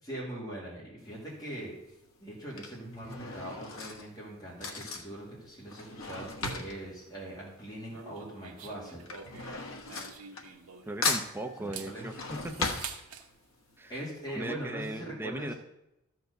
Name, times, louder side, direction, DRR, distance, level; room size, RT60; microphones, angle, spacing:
voice 1, 0.0-1.7 2.2-9.0 11.6-12.1 13.9-15.5, right 1 dB, 20° left, -6 dB, 2.4 m, -41 dB
Drawer open or close / Cutlery silverware, 1.0-1.4 2.2-8.1 8.4-10.8 11.0-13.5 14.0-14.1 14.3-14.4, left 4 dB, 65° left, 1.3 m, -37 dB
sound 1, 7.9-11.1 11.6-13.3, right 6 dB, 80° right, 1.1 m, -46 dB
voice 2, 10.9-12.1 12.4-12.7 13.8-13.9 14.3-15.5, right 1 dB, 10° right, 4 dB, 0.5 m, -38 dB
13.0 x 4.6 x 6.6 m, 0.88 s
head